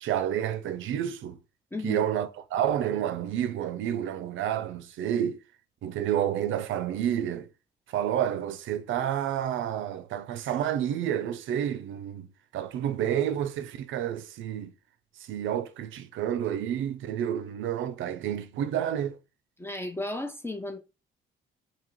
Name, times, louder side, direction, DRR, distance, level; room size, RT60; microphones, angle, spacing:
voice 1, 0.0-1.4 1.8-5.4 5.8-7.5 7.9-14.7 15.2-19.2, right 10 dB, 80° right, 0.6 m, -29 dB
voice 2, 1.7-2.1 19.6-20.8, left 2 dB, 10° left, 0.7 m, -34 dB
3.0 x 2.9 x 4.0 m
cardioid pair, 90°, 20 cm